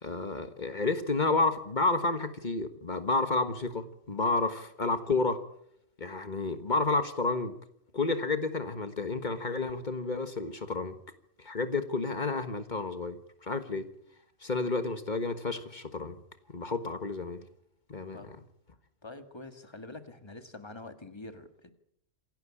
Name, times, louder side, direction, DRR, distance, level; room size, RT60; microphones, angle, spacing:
voice 1, 0.0-5.4 6.0-7.5 7.9-11.0 11.4-13.9 14.4-16.2 16.5-17.4 17.9-18.3, left 3 dB, 40° left, 9 dB, 1.6 m, -30 dB
voice 2, 19.0-21.7, left 2 dB, 25° left, 8 dB, 1.8 m, -46 dB
27.0 x 11.5 x 8.5 m, 0.72 s
omnidirectional pair, 1.2 m